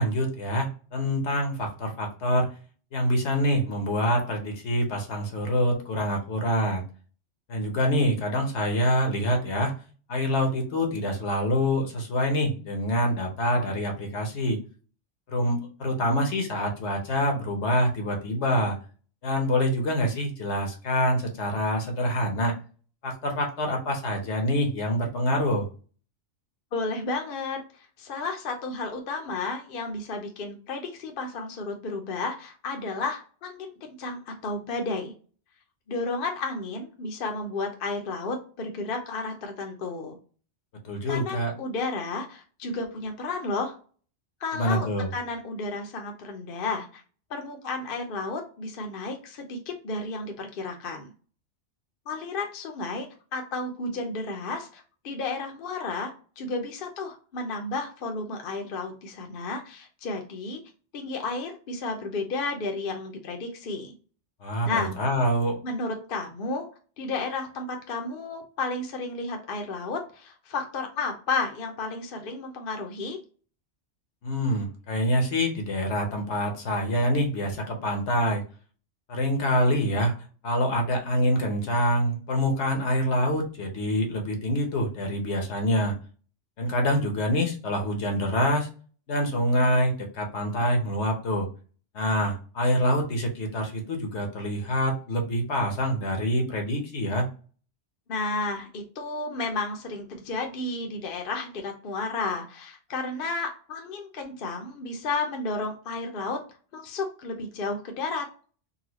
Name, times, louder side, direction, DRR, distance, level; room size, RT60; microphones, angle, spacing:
voice 1, 0.0-2.5 2.9-6.8 7.5-9.7 10.1-14.6 15.3-18.8 19.2-22.6 23.0-25.7 40.8-41.5 44.5-45.1 64.4-65.6 74.2-78.4 79.1-80.1 80.4-85.9 86.6-88.7 89.1-91.5 91.9-97.3, equal, 70° left, 3 dB, 1.1 m, -26 dB
voice 2, 26.7-35.1 35.9-40.2 41.1-43.8 44.4-44.9 45.1-47.0 47.3-51.1 52.1-60.6 60.9-63.9 64.6-64.9 65.6-66.7 67.0-73.2 98.1-106.4 106.7-108.3, left 3 dB, 55° left, 3 dB, 0.8 m, -32 dB
4.0 x 2.2 x 2.9 m, 0.38 s
omnidirectional pair, 1.2 m